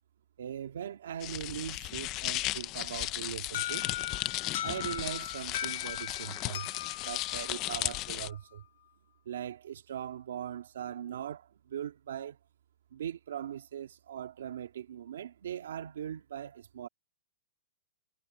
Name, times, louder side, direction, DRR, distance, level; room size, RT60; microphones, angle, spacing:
voice 1, 0.4-3.9 4.6-6.7 7.0-8.6 9.3-12.4 12.9-16.9, right 10 dB, 80° right, 2.1 m, -40 dB
sound 1, 1.2-8.3, left 18 dB, 25° left, 0.7 m, -36 dB
Alarm, 3.5-8.3, left 12 dB, 55° left, 1.3 m, -39 dB
hypercardioid pair, 165°, 0 cm